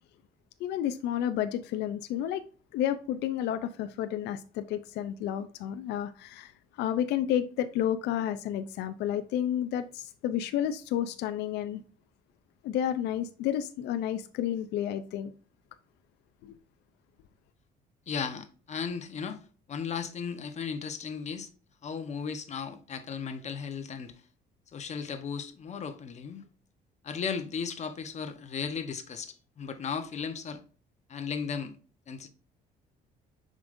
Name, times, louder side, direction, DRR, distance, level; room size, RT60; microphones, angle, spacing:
voice 1, 0.6-2.4 2.7-6.5 6.8-11.8 12.6-15.3 16.4-16.5, left 10 dB, 80° left, 0.6 m, -31 dB
voice 2, 18.1-21.5 21.8-24.2 24.7-26.5 27.0-30.6 31.1-31.8 32.1-32.3, left 6 dB, 40° left, 1.1 m, -36 dB
7.0 x 5.3 x 2.6 m
cardioid pair, 110°, 17 cm